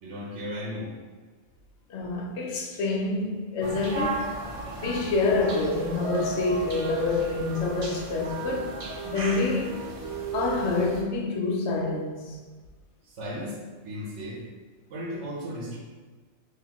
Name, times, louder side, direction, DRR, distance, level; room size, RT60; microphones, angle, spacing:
voice 1, 0.0-0.9 6.9-7.1 13.1-14.4 14.9-15.8, equal, 90° right, 1.2 m, -35 dB
voice 2, 1.9-4.4 4.8-8.7 9.0-9.8 10.3-12.4, left 3 dB, 80° left, 0.9 m, -27 dB
sound 1, 3.6-11.0, right 2 dB, 45° right, 0.4 m, -34 dB
4.0 x 3.0 x 3.0 m
omnidirectional pair, 1.2 m